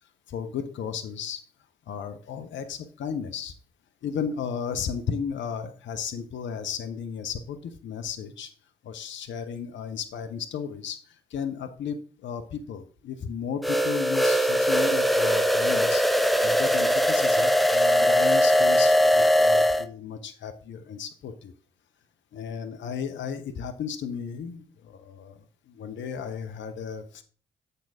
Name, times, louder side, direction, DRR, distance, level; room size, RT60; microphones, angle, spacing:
voice 1, 0.3-1.4 1.9-3.5 4.0-8.5 8.8-16.0 16.4-21.5 22.3-25.3 25.7-27.2, left 7 dB, 60° left, 8 dB, 0.9 m, -34 dB
sound 1, 13.6-19.8, equal, ahead, 0.7 m, -21 dB
7.6 x 6.8 x 3.6 m, 0.41 s
hypercardioid pair, 40°, 21 cm